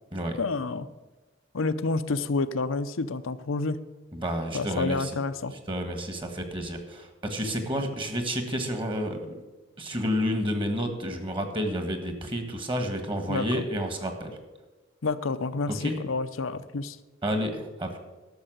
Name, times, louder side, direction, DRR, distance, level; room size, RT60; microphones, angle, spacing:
voice 1, 0.4-0.9 1.5-3.8 4.5-5.5 13.3-13.6 15.0-17.0, left 3 dB, 85° left, 12 dB, 0.7 m, -29 dB
voice 2, 4.1-5.1 5.7-9.4 9.8-14.4 15.7-15.9 17.2-18.0, equal, 25° right, 6 dB, 1.6 m, -30 dB
12.0 x 6.8 x 7.9 m, 1.1 s
head